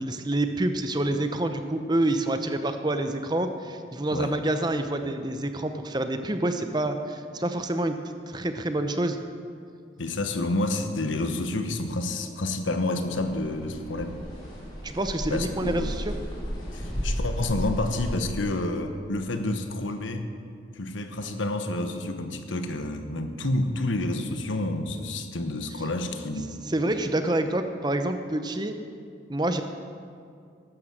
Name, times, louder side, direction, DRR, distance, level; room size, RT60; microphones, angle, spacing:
voice 1, 0.0-8.0 8.3-9.2 14.8-16.2 26.7-28.8 29.3-29.6, right 1 dB, 20° right, 8 dB, 0.7 m, -27 dB
voice 2, 10.0-14.1 15.3-16.0 16.7-20.3 20.7-26.5, left 2 dB, 80° left, 7 dB, 1.2 m, -29 dB
sound 1, 13.0-18.1, equal, 25° left, 3.6 m, -33 dB
12.5 x 11.0 x 7.4 m, 2.3 s
head